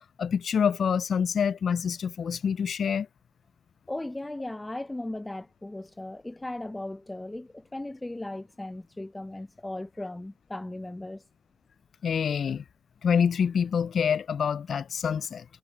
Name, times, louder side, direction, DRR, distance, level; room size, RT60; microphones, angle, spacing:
voice 1, 0.2-3.1 12.0-12.6 13.0-15.4, left 7 dB, 65° left, 0.4 m, -26 dB
voice 2, 3.9-11.2, left 1 dB, 15° left, 0.7 m, -37 dB
supercardioid pair, 45°, 0 cm